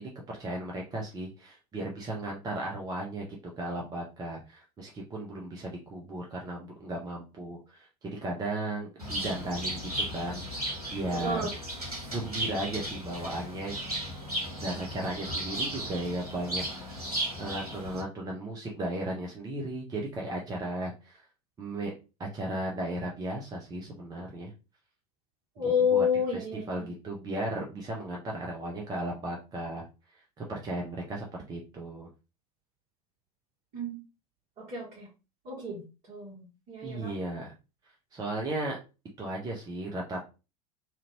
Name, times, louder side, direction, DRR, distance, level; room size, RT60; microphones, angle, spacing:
voice 1, 0.0-11.4 12.1-14.1 14.6-17.0 17.4-21.2 21.6-21.9 22.2-24.5 25.6-26.1 26.3-29.8 30.4-32.1 36.8-37.5 38.1-38.8 39.2-40.2, right 1 dB, 20° right, -1 dB, 0.7 m, -36 dB
Bird, 9.0-18.0, right 1 dB, 85° right, 1.2 m, -35 dB
voice 2, 11.1-11.5 25.6-26.9 33.7-34.0 34.6-35.1 35.4-36.4 36.7-37.1, left 5 dB, 40° right, -7 dB, 1.5 m, -30 dB
2.9 x 2.5 x 2.9 m, 0.30 s
figure-of-eight pair, 80°, 19 cm